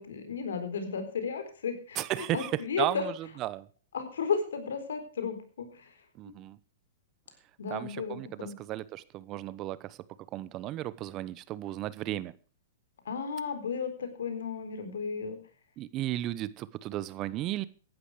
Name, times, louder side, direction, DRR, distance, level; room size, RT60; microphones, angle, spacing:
voice 1, 0.0-3.0 3.9-5.9 6.2-6.3 7.6-8.6 13.1-15.4, left 6 dB, 80° left, 8 dB, 4.1 m, -34 dB
voice 2, 1.9-3.7 6.1-6.6 7.7-10.0 10.3-12.4 15.8-17.6, right 14 dB, 35° right, 19 dB, 0.9 m, -34 dB
15.0 x 11.5 x 4.9 m, 0.37 s
hypercardioid pair, 130°, 0 cm